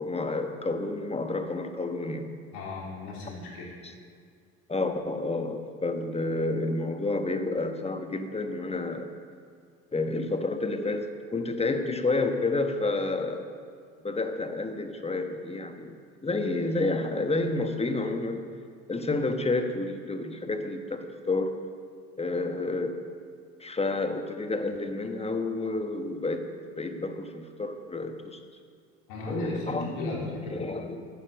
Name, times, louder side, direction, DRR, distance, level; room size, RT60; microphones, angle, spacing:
voice 1, 0.0-2.3 4.7-9.1 9.9-13.5 14.0-16.0 16.2-18.4 18.9-21.6 22.2-23.0 23.6-26.5 26.8-28.4 29.3-31.1, left 2 dB, 15° left, 7 dB, 1.3 m, -30 dB
voice 2, 2.5-3.7 29.1-30.7, left 2 dB, 65° left, -3 dB, 3.7 m, -36 dB
10.5 x 10.0 x 6.7 m, 2.2 s
hypercardioid pair, 65°, 39 cm